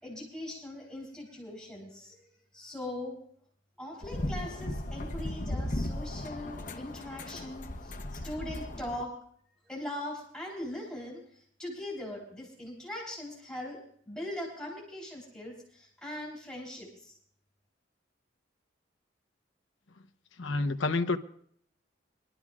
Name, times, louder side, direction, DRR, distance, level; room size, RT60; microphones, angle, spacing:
voice 1, 0.0-2.1 2.5-3.2 3.8-9.2 9.6-13.8 14.1-17.2, left 1 dB, 5° left, -3 dB, 3.7 m, -40 dB
sound 1, 4.0-9.0, left 1 dB, 45° left, 1.0 m, -36 dB
voice 2, 20.4-21.2, left 3 dB, 85° left, 6 dB, 0.9 m, -28 dB
24.5 x 12.5 x 2.4 m, 0.63 s
head